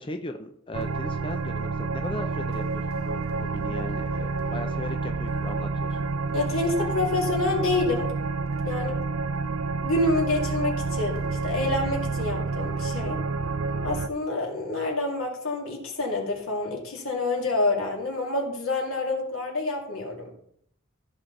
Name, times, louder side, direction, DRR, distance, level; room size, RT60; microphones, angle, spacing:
voice 1, 0.0-6.0 8.9-9.2, left 1 dB, 25° left, 5 dB, 0.6 m, -38 dB
sound 1, 0.7-14.1, right 4 dB, 75° right, 0.5 m, -29 dB
voice 2, 6.3-8.1 8.7-9.0 9.8-13.2 13.8-20.3, left 2 dB, 85° left, 0 dB, 2.7 m, -27 dB
14.5 x 6.2 x 4.0 m, 0.69 s
head